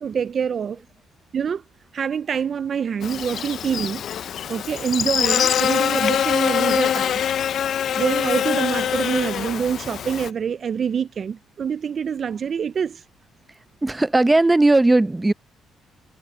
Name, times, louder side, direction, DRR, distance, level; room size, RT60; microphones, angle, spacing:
voice 1, 0.0-0.8 1.3-1.6 1.9-4.0 4.5-7.2 7.9-13.0, right 7 dB, 50° right, 0.4 m, -25 dB
Buzz, 3.0-10.3, left 9 dB, 65° left, 0.5 m, -24 dB
voice 2, 13.8-15.3, right 2 dB, 15° right, 0.6 m, -17 dB
cardioid pair, 90°, 0 cm